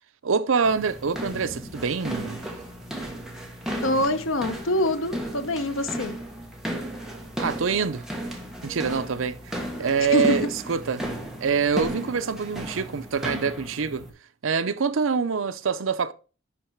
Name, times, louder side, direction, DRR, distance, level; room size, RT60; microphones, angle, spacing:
voice 1, 0.2-2.4 7.4-8.1 8.6-11.0 11.4-14.1 14.4-16.1, right 5 dB, 80° right, 0.6 m, -25 dB
sound 1, 0.6-14.1, equal, ahead, 1.6 m, -34 dB
voice 2, 3.8-6.2 10.1-10.4, left 1 dB, 80° left, 1.0 m, -25 dB
11.0 x 4.0 x 4.5 m
head